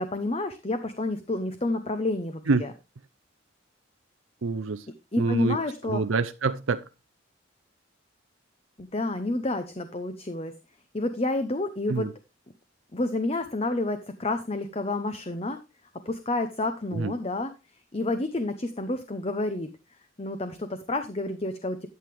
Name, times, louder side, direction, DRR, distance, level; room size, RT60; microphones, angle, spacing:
voice 1, 0.0-2.7 5.1-6.0 8.8-10.5 10.9-12.1 12.9-15.6 16.1-17.5 17.9-19.7 20.2-21.9, left 2 dB, 30° left, 0.8 m, -29 dB
voice 2, 4.4-4.9 5.2-5.6 5.8-6.8 11.9-12.1 16.9-17.1, right 4 dB, 85° right, 0.6 m, -26 dB
12.0 x 7.8 x 3.5 m
head